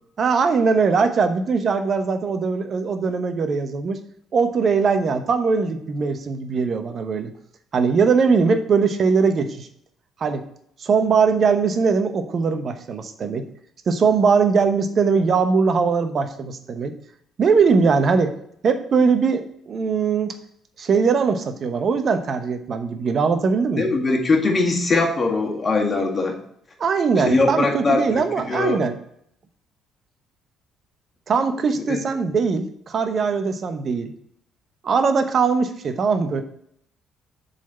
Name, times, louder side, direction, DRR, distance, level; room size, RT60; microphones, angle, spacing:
voice 1, 0.2-4.0 4.3-7.3 7.7-9.7 10.2-10.4 10.8-13.5 13.9-16.9 17.4-18.3 18.6-20.4 20.8-23.9 26.8-28.9 31.3-34.1 34.8-36.4, right 5 dB, 50° right, 8 dB, 0.9 m, -20 dB
voice 2, 23.8-26.3 27.2-28.8 31.9-32.0, left 3 dB, 35° left, 1 dB, 1.9 m, -21 dB
7.3 x 4.2 x 5.6 m, 0.70 s
hypercardioid pair, 50°, 0 cm